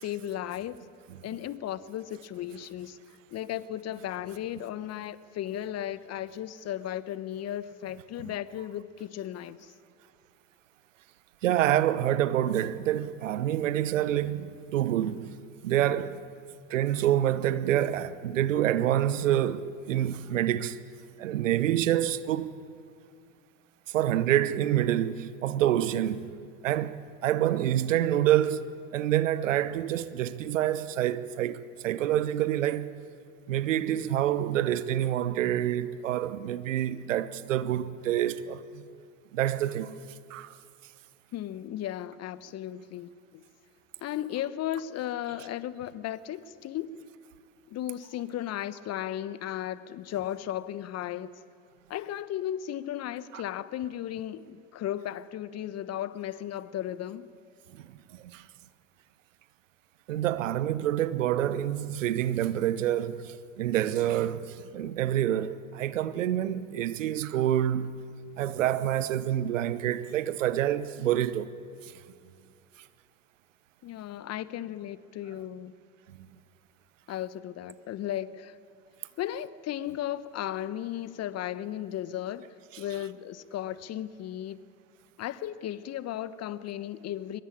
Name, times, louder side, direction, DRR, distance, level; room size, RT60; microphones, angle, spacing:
voice 1, 0.0-0.8 1.2-3.0 3.3-9.7 41.3-43.4 44.0-47.0 47.7-51.4 51.9-57.3 73.8-75.7 77.1-78.6 79.2-82.5 82.8-84.6 85.2-87.4, left 12 dB, 40° left, 1.2 m, -35 dB
voice 2, 11.4-15.4 15.6-16.3 16.7-20.8 21.2-22.6 23.9-26.3 26.6-28.6 28.9-32.9 33.5-38.8 39.3-40.0 40.3-40.6 53.3-53.4 57.8-58.5 60.1-68.0 68.4-71.5 71.8-71.9 76.1-76.2, right 12 dB, 75° right, 1.1 m, -27 dB
23.5 x 21.5 x 8.8 m
hypercardioid pair, 75°, 38 cm